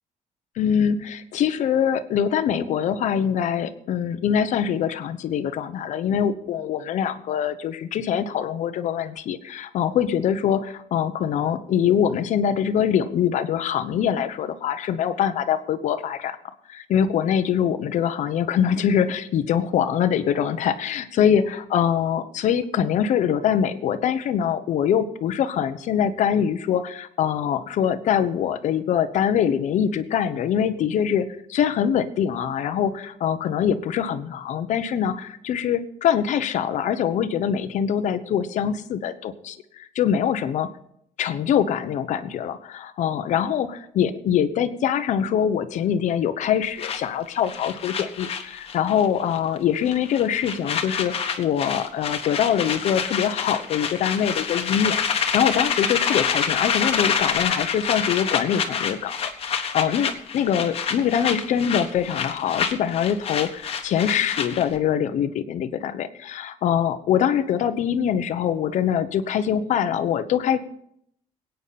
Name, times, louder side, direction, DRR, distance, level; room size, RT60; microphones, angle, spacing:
voice 1, 0.6-16.4 16.7-40.7 41.2-70.6, left 8 dB, 65° left, 11 dB, 1.0 m, -23 dB
sound 1, 46.8-49.1 49.3-49.6 49.9-64.8, left 7 dB, 45° left, 1.4 m, -27 dB
21.5 x 9.3 x 4.2 m, 0.72 s
cardioid pair, 140°, 13 cm